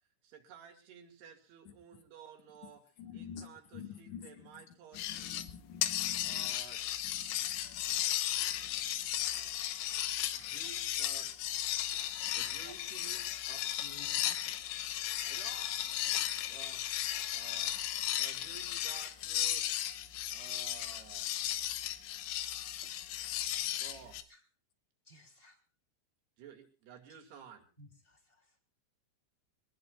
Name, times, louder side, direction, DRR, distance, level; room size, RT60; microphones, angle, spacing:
voice 1, 0.2-5.5 6.2-6.8 10.3-11.3 12.3-13.7 15.2-15.8 16.5-16.8 17.3-17.8 18.2-19.7 20.3-21.3 22.8-23.4 23.8-24.2 26.4-27.7, right 7 dB, 60° right, 4 dB, 4.2 m, -54 dB
voice 2, 3.0-4.5 4.9-6.5 7.0-8.0 8.5-9.1 10.4-10.5 16.1-16.3, left 8 dB, 55° left, 7 dB, 2.4 m, -49 dB
sound 1, 4.9-5.5 5.8-24.2, left 12 dB, 80° left, 3.3 m, -35 dB
voice 3, 12.4-12.7 13.8-14.5 23.9-24.4 25.0-25.6 27.1-27.2 27.8-28.6, left 1 dB, 15° left, 3 dB, 2.7 m, -57 dB
23.5 x 19.5 x 2.4 m, 0.33 s
omnidirectional pair, 5.5 m